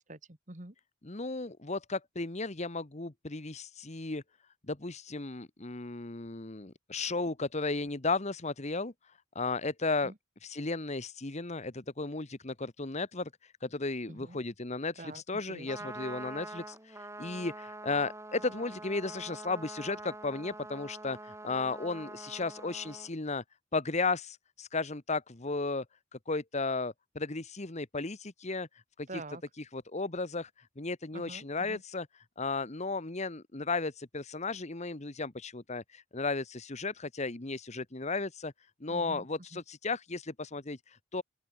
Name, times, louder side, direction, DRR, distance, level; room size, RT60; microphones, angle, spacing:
voice 1, 0.1-0.7 10.0-10.1 14.1-14.4 15.0-15.2 15.5-15.9 29.1-29.4 31.1-31.8 38.9-39.2 39.5-39.6, right 2 dB, 35° right, 2.2 m, -46 dB
voice 2, 1.0-4.2 4.7-8.9 9.3-10.1 10.4-13.3 13.6-23.4 23.7-25.8 26.1-28.7 29.0-29.1 29.7-30.5 30.8-32.1 32.4-38.5 38.8-41.2, left 3 dB, 35° left, 1.3 m, -34 dB
Trumpet, 15.5-23.1, right 2 dB, 15° right, 3.4 m, -45 dB
open air
head